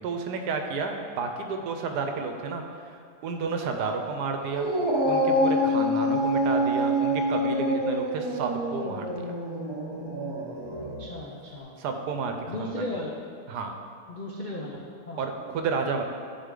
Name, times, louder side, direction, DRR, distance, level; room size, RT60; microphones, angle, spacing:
voice 1, 0.0-2.6 3.2-4.7 5.0-9.4 11.8-12.7 13.5-13.7 15.2-16.0, right 4 dB, 75° right, 5 dB, 1.2 m, -31 dB
Dog, 4.5-11.1, equal, 35° right, 0.4 m, -26 dB
voice 2, 11.0-11.7 12.5-13.2 14.1-15.2, left 1 dB, 65° left, -3 dB, 0.4 m, -36 dB
10.0 x 4.6 x 3.8 m, 2.3 s
omnidirectional pair, 1.8 m